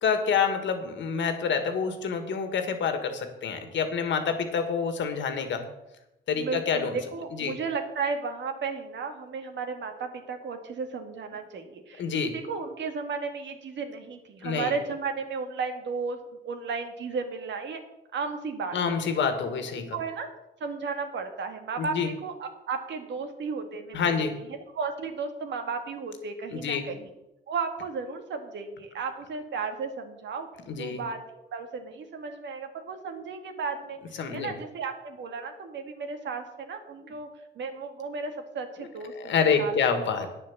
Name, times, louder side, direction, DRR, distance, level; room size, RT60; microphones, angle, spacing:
voice 1, 0.0-5.7 6.3-7.0 7.3-7.6 12.0-12.3 14.4-14.7 18.7-20.0 21.8-22.1 23.9-24.4 26.5-26.9 30.7-31.0 34.2-34.6 37.0-37.1 38.8-38.9 39.1-40.3, left 6 dB, 70° left, 7 dB, 1.9 m, -27 dB
voice 2, 6.3-16.2 16.4-17.8 18.1-19.1 19.7-20.3 20.6-27.1 27.5-30.5 30.7-37.3 37.6-39.8, right 4 dB, 65° right, 6 dB, 1.9 m, -34 dB
9.4 x 7.5 x 7.2 m, 0.91 s
cardioid pair, 90°, 20 cm